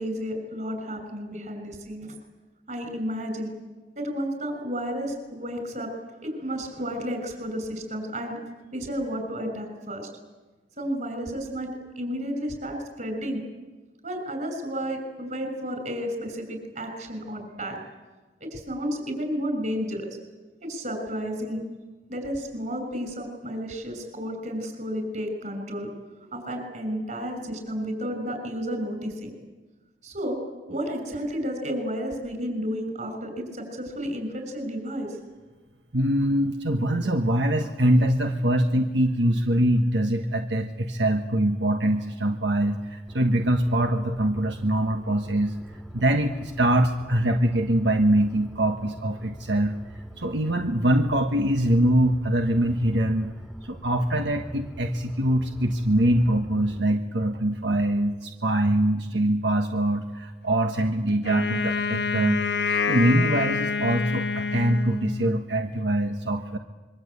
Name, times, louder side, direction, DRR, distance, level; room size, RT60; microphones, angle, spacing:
voice 1, 0.0-2.1 2.7-3.5 4.0-5.9 6.2-8.4 8.7-10.1 10.8-13.4 14.0-17.8 18.4-20.1 20.6-21.6 22.1-25.9 26.2-29.3 30.0-30.4 30.7-35.2, equal, 45° right, 6 dB, 6.2 m, -32 dB
voice 2, 35.9-45.6 45.9-49.7 50.2-53.3 53.6-62.4 62.9-66.6, right 1 dB, 85° right, 4 dB, 1.5 m, -23 dB
sound 1, 43.1-56.8, equal, 5° right, 1.7 m, -44 dB
Wind instrument woodwind instrument, 61.2-65.5, left 5 dB, 75° left, 1.3 m, -27 dB
26.0 x 23.0 x 8.4 m, 1.2 s
head